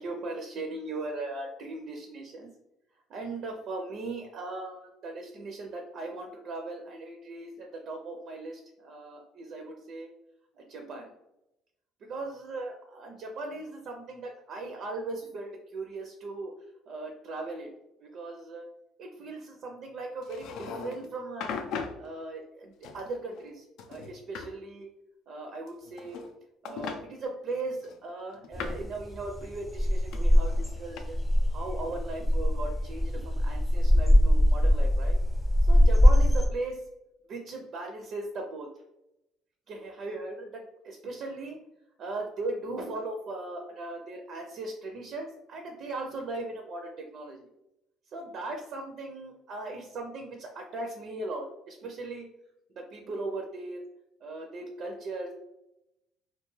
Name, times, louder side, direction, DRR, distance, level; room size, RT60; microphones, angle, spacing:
voice 1, 0.0-2.5 3.1-10.1 10.6-11.1 12.1-16.5 16.9-17.7 18.0-18.7 19.0-21.6 22.0-24.9 25.3-26.2 26.6-31.2 31.5-35.2 35.6-36.8 37.3-38.7 39.7-41.6 42.0-47.5 48.1-52.3 52.8-53.8 54.2-55.3, right 2 dB, 60° right, 2 dB, 0.4 m, -38 dB
sound 1, 20.2-21.1 21.4-22.0 22.8-23.5 23.8-24.5 25.7-26.3 26.6-27.0 27.8-28.9 30.1-31.0, left 5 dB, 75° left, 0.3 m, -38 dB
sound 2, 28.5-36.5, equal, 10° left, 0.4 m, -23 dB
2.4 x 2.3 x 3.0 m, 0.87 s
cardioid pair, 110°, 0 cm